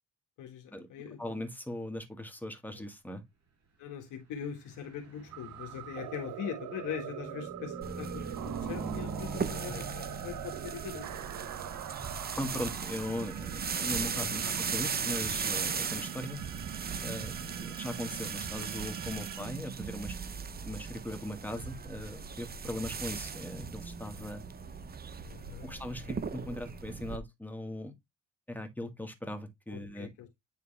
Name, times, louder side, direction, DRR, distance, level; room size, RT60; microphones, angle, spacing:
voice 1, 0.4-1.2 2.8-2.9 3.8-11.1 14.1-14.4 17.4-17.8 22.7-22.8 25.2-25.7 29.7-30.3, left 9 dB, 85° left, 1.7 m, -42 dB
voice 2, 1.2-3.2 9.7-9.8 12.3-16.4 17.0-20.4 20.6-24.4 25.6-27.9 28.5-30.1, left 1 dB, 5° left, 1.7 m, -39 dB
Car passing by / Truck, 4.3-18.0, right 4 dB, 60° right, 5.0 m, -46 dB
sound 1, 5.3-20.4, right 11 dB, 75° right, 0.9 m, -42 dB
sound 2, 7.8-27.2, right 5 dB, 30° right, 0.9 m, -38 dB
9.6 x 3.5 x 3.3 m
cardioid pair, 90°, 30 cm